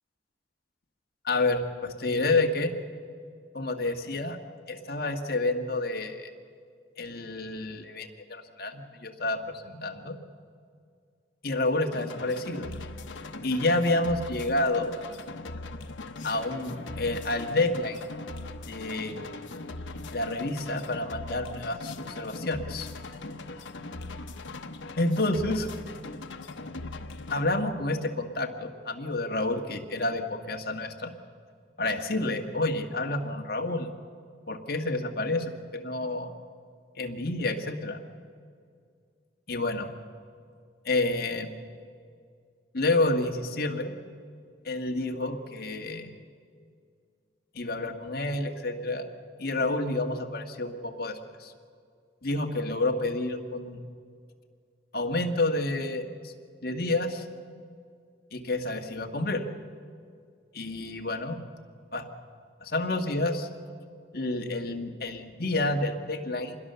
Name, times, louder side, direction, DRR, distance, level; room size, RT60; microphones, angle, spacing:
voice 1, 1.2-2.7 3.5-4.4 4.7-6.3 7.0-10.2 11.4-12.7 13.4-14.9 16.2-18.0 18.7-19.3 20.1-22.9 25.0-25.7 27.3-31.1 31.8-33.9 34.5-36.3 37.0-38.0 39.5-39.9 40.8-41.5 42.7-44.0 44.6-46.1 47.5-49.1 49.4-51.5 52.2-53.8 54.9-56.3 56.6-57.2 58.3-59.4 60.5-61.4 61.9-62.1 62.6-63.5 64.1-66.6, left 2 dB, 50° left, 4 dB, 1.7 m, -29 dB
sound 1, 11.9-27.4, left 2 dB, 80° left, 1.0 m, -40 dB
26.0 x 21.0 x 6.9 m, 2.2 s
head